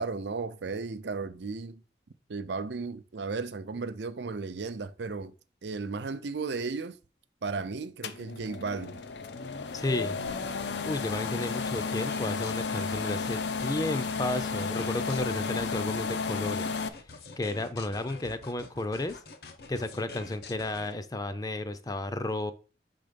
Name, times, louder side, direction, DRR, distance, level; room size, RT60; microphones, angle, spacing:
voice 1, 0.0-1.8 2.3-5.3 5.6-7.0 7.4-9.0, right 4 dB, 80° right, 0.6 m, -34 dB
sound 1, 8.0-16.9, left 4 dB, 80° left, 0.6 m, -33 dB
voice 2, 9.7-10.2 10.8-16.8 17.4-19.2 19.7-22.5, left 2 dB, 20° left, 0.5 m, -32 dB
sound 2, 10.3-20.9, left 3 dB, 60° left, 0.9 m, -47 dB
6.3 x 3.9 x 5.2 m
head